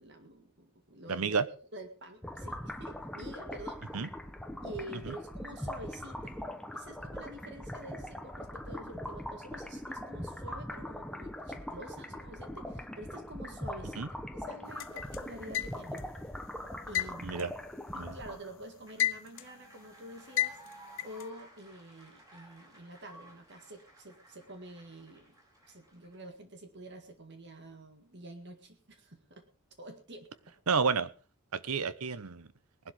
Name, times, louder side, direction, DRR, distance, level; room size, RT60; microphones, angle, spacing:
voice 1, 0.0-3.8 4.6-6.4 6.7-16.0 16.9-17.5 17.9-20.6 21.0-25.4 25.7-29.4 29.8-30.3, right 1 dB, 55° right, 1.9 m, -48 dB
voice 2, 1.1-1.4 3.9-4.1 14.0-14.1 17.2-17.5 17.9-18.2 30.7-31.1 31.5-32.5, right 5 dB, 85° right, 0.9 m, -30 dB
sound 1, 2.2-18.7, left 1 dB, 5° left, 1.0 m, -41 dB
sound 2, 14.8-16.1 16.9-18.3 18.7-19.6 20.4-21.2, left 12 dB, 60° left, 0.7 m, -33 dB
sound 3, 18.1-26.2, right 1 dB, 15° right, 5.7 m, -56 dB
19.5 x 11.5 x 3.6 m
head